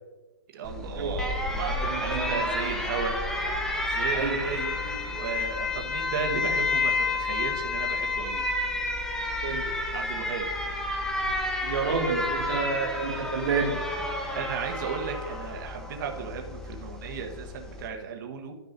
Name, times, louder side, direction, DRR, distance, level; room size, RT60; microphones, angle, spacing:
voice 1, 0.5-3.2 3.9-8.5 9.9-10.4 14.3-18.5, right 6 dB, 50° right, 2 dB, 1.2 m, -35 dB
Alarm, 0.6-17.9, left 2 dB, 5° left, 0.9 m, -30 dB
voice 2, 1.8-2.7 4.1-4.4 9.4-9.7 11.6-14.1, right 4 dB, 65° right, 0 dB, 2.2 m, -30 dB
13.0 x 5.9 x 2.6 m, 1.2 s
hypercardioid pair, 155°, 14 cm